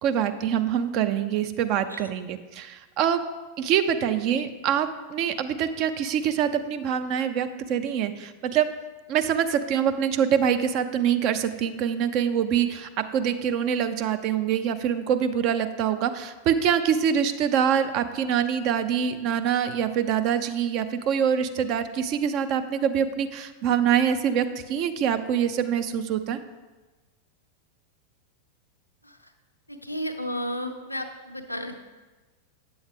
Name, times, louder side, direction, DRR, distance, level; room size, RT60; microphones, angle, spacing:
voice 1, 0.0-3.2 3.6-8.7 9.1-26.4, right 8 dB, 40° right, 9 dB, 0.5 m, -25 dB
voice 2, 29.7-31.8, equal, 90° left, 5 dB, 0.6 m, -33 dB
8.7 x 7.0 x 3.6 m, 1.2 s
figure-of-eight pair, 90°, 0 cm